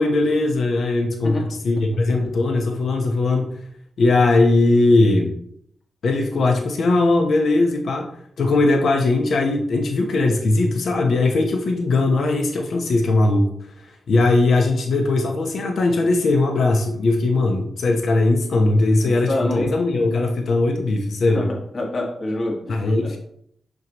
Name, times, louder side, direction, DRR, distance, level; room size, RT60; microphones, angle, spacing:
voice 1, 0.0-3.6 4.0-5.3 6.0-8.1 8.4-21.5 22.7-23.2, left 2 dB, 75° left, 3 dB, 0.9 m, -19 dB
voice 2, 19.0-19.7 21.3-23.2, left 1 dB, 50° left, 0 dB, 1.7 m, -27 dB
6.4 x 5.4 x 3.0 m, 0.69 s
cardioid pair, 70°, 0 cm